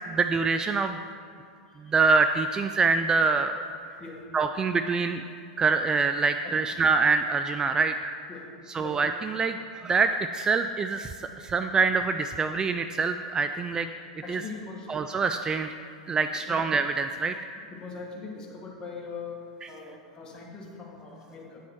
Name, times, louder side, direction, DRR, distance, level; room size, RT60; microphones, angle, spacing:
voice 1, 0.1-1.0 1.8-3.6 4.3-5.2 5.6-8.1 8.7-13.9 14.3-14.4 14.9-15.7 16.1-17.4, right 4 dB, 20° right, 8 dB, 0.3 m, -25 dB
voice 2, 14.2-14.9 16.5-16.6 17.6-19.4 19.7-21.6, left 4 dB, 25° left, -2 dB, 2.0 m, -41 dB
9.2 x 7.2 x 4.5 m, 2.3 s
hypercardioid pair, 95°, 3 cm